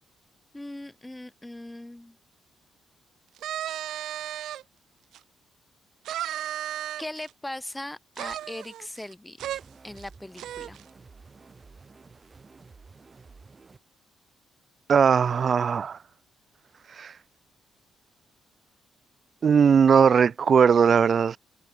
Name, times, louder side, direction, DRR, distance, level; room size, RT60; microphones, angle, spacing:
voice 1, 0.5-2.2 7.0-10.8, left 1 dB, 10° left, 1.7 m, -39 dB
sound 1, 3.4-4.6 5.1-5.2 6.0-7.3 8.1-9.1 9.4-9.6 10.0-10.1 10.4-10.8, right 12 dB, 80° right, 0.3 m, -34 dB
sound 2, 9.4-13.8, right 4 dB, 30° right, 2.2 m, -51 dB
voice 2, 14.9-16.0 17.0-17.1 19.4-21.4, right 6 dB, 45° right, 0.6 m, -19 dB
cardioid pair, 120°, 0 cm